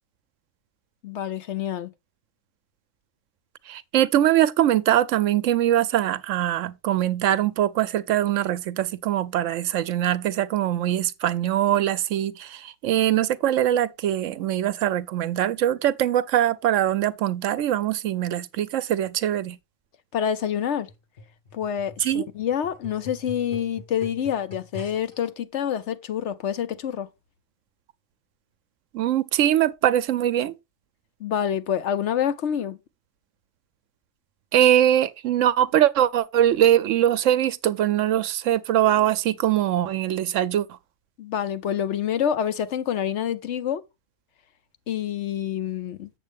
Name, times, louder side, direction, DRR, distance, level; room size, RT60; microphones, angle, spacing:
voice 1, 1.0-1.9 20.1-20.9 21.5-27.1 31.2-32.8 41.2-43.8 44.9-46.1, left 9 dB, 65° left, 0.9 m, -27 dB
voice 2, 3.7-19.6 22.0-22.2 28.9-30.5 34.5-40.7, right 11 dB, 70° right, 0.9 m, -22 dB
sound 1, 20.9-25.3 26.1-26.2, left 2 dB, 40° left, 2.1 m, -44 dB
7.5 x 7.3 x 3.5 m
omnidirectional pair, 1.4 m